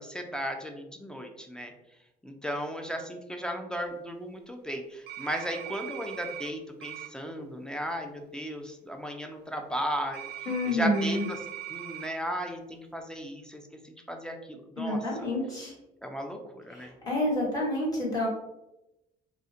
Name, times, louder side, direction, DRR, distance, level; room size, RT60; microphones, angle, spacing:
voice 1, 0.0-1.7 2.2-10.3 10.7-11.4 11.7-15.3 16.0-16.9, equal, 5° left, 3 dB, 0.3 m, -35 dB
sound 1, 5.1-6.5 6.8-7.1 10.1-12.1, right 12 dB, 65° right, 0.4 m, -40 dB
voice 2, 10.5-11.2 14.8-15.7 16.7-18.3, left 1 dB, 20° left, -5 dB, 1.2 m, -28 dB
2.3 x 2.1 x 2.6 m, 0.89 s
cardioid pair, 110°, 17 cm